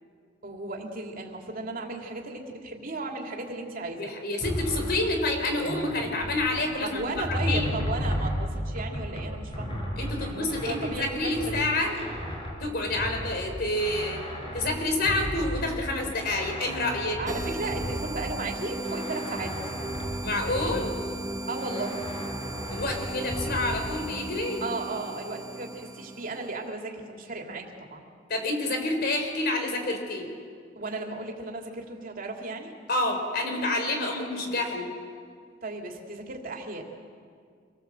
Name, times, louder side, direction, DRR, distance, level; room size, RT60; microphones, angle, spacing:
voice 1, 0.4-4.2 6.8-9.8 10.2-11.5 12.0-12.1 17.2-19.5 21.5-22.0 24.6-28.0 30.7-32.7 35.6-36.8, right 2 dB, 50° right, 1 dB, 3.0 m, -35 dB
voice 2, 4.0-7.0 7.3-7.7 10.0-12.0 12.6-14.2 14.5-17.2 20.2-20.9 22.7-24.6 28.3-30.3 32.9-34.9, left 2 dB, 55° left, 4 dB, 4.0 m, -28 dB
sound 1, 4.4-6.6 7.0-18.4 18.8-21.1 21.5-23.8, equal, 30° left, 5.6 m, -34 dB
sound 2, 17.3-26.6, right 2 dB, 20° right, 0.9 m, -36 dB
26.5 x 18.5 x 7.8 m, 2.1 s
head